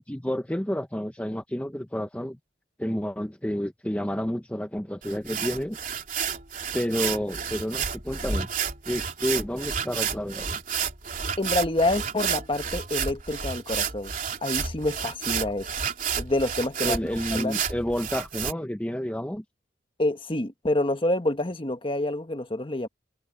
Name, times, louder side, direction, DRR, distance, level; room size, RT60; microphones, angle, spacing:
voice 1, 0.0-2.4 2.8-5.8 6.7-8.6 8.9-10.6 16.8-19.4, equal, 10° left, 0.7 m, -30 dB
sound 1, 5.0-18.5, right 7 dB, 50° right, 3.6 m, -31 dB
voice 2, 11.4-14.1 14.4-15.7 16.2-17.0 17.3-17.6 20.0-22.9, left 1 dB, 30° left, 1.4 m, -27 dB
head